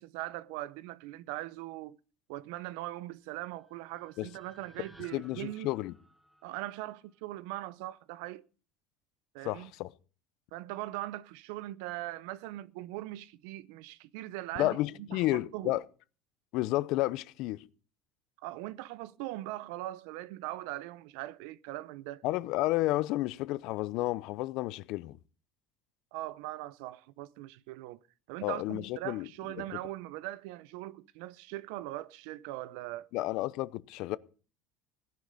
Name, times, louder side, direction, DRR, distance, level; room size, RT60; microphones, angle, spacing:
voice 1, 0.0-2.0 2.3-5.7 6.4-8.4 9.3-9.7 10.5-15.8 18.4-22.2 26.1-28.0 28.3-33.1, right 16 dB, 80° right, 0.7 m, -40 dB
sound 1, 3.2-7.4, right 1 dB, 5° right, 1.4 m, -60 dB
voice 2, 5.1-5.9 9.4-9.9 14.5-15.8 16.5-17.7 22.2-25.2 28.4-29.3 29.6-29.7 33.1-34.2, left 17 dB, 60° left, 0.6 m, -31 dB
17.5 x 10.5 x 5.4 m
cardioid pair, 140°, 0 cm